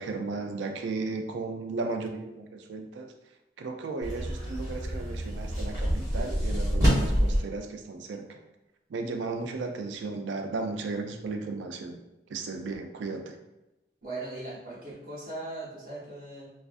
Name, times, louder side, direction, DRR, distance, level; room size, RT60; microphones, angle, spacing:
voice 1, 0.0-3.1 3.6-8.4 8.9-12.0 12.3-13.4, right 3 dB, 80° right, 4 dB, 0.3 m, -35 dB
sound 1, 4.0-7.4, equal, 20° right, 0.9 m, -27 dB
voice 2, 14.0-16.5, right 2 dB, 50° right, -9 dB, 0.9 m, -39 dB
2.4 x 2.4 x 2.4 m, 0.97 s
head